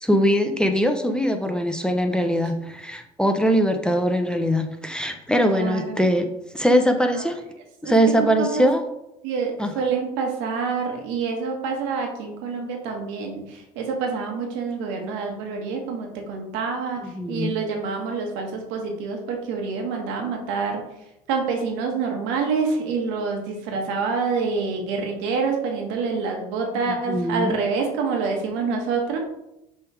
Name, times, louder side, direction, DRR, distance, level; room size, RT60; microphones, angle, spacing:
voice 1, 0.0-6.2 6.5-7.4 7.8-8.8 9.6-9.7 17.0-17.5 26.9-27.6, equal, 5° left, 5 dB, 0.8 m, -21 dB
voice 2, 5.5-6.1 7.1-7.2 7.8-8.7 9.2-17.0 17.3-20.8 21.3-29.2, right 5 dB, 75° right, 2 dB, 1.5 m, -27 dB
6.6 x 3.6 x 4.9 m, 0.87 s
hypercardioid pair, 70°, 20 cm